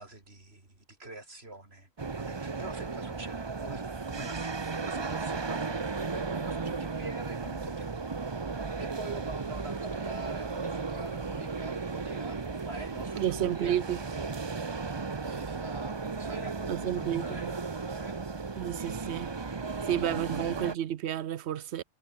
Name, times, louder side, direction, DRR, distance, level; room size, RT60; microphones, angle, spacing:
voice 1, 0.0-1.9 2.2-8.3 8.8-13.8 14.1-14.6 15.2-18.2, right 2 dB, 70° right, 4.7 m, -46 dB
sound 1, 2.0-20.8, right 4 dB, 25° right, 0.8 m, -35 dB
voice 2, 13.2-14.0 16.7-17.5 18.6-19.3 19.9-21.8, right 10 dB, 90° right, 1.0 m, -31 dB
omnidirectional pair, 1.1 m